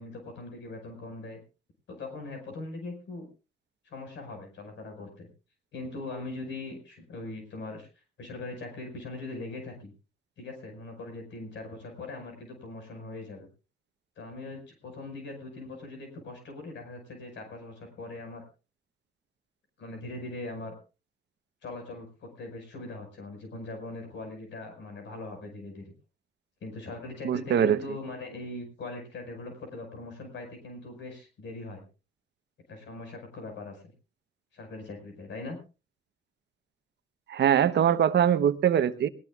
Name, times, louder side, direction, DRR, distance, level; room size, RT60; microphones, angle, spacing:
voice 1, 0.0-1.4 1.9-3.3 3.8-5.3 5.7-7.9 8.2-9.9 10.4-13.5 14.2-18.4 19.8-20.8 21.6-25.8 26.6-31.8 32.7-33.9 34.5-35.6, left 2 dB, 65° left, 4 dB, 5.4 m, -41 dB
voice 2, 27.2-27.8 37.3-39.1, right 9 dB, 60° right, 11 dB, 1.0 m, -22 dB
20.5 x 18.0 x 2.4 m, 0.33 s
cardioid pair, 90°, 20 cm